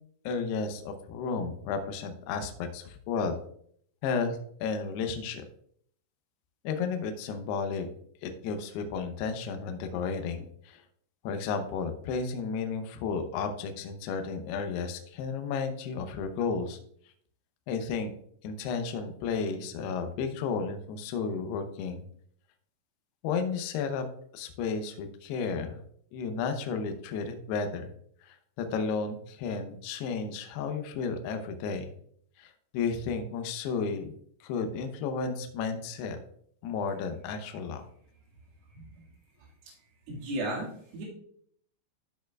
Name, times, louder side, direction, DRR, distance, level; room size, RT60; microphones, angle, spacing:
voice 1, 0.2-3.4 4.0-5.4 6.6-7.9 8.2-10.8 11.2-16.8 17.7-18.1 18.4-22.1 23.2-24.1 24.3-25.8 26.1-27.9 28.2-31.9 32.4-34.1 34.4-36.2 36.6-37.8, left 5 dB, 90° left, 6 dB, 2.3 m, -33 dB
voice 2, 40.1-41.0, right 1 dB, 55° right, -3 dB, 3.3 m, -34 dB
13.0 x 6.4 x 2.3 m, 0.65 s
omnidirectional pair, 5.9 m